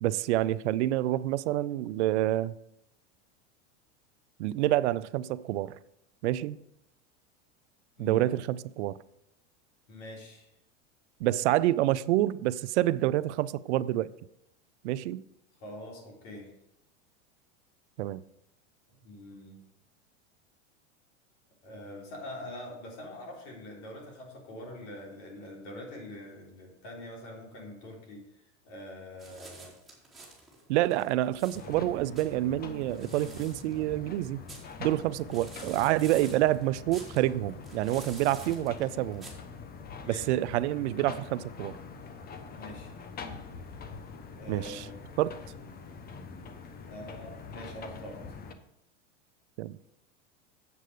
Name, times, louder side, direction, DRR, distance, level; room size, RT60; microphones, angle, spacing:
voice 1, 0.0-2.5 4.4-5.8 6.2-6.6 8.0-9.0 11.2-14.1 14.8-15.2 18.0-18.2 30.7-34.4 34.8-39.3 40.1-41.8 44.5-44.9 45.2-45.4 49.6-49.8, right 15 dB, 75° right, 0.5 m, -28 dB
voice 2, 8.0-8.3 9.9-10.5 15.6-16.5 18.9-19.6 21.6-28.2 28.6-29.7 40.0-40.3 42.5-42.9 44.4-44.9 46.9-48.2, left 1 dB, 55° left, 3.7 m, -44 dB
sound 1, 29.2-39.3, right 2 dB, ahead, 4.2 m, -50 dB
sound 2, 31.5-48.5, left 5 dB, 25° left, 1.0 m, -44 dB
8.2 x 7.5 x 5.1 m
supercardioid pair, 115°, 35 cm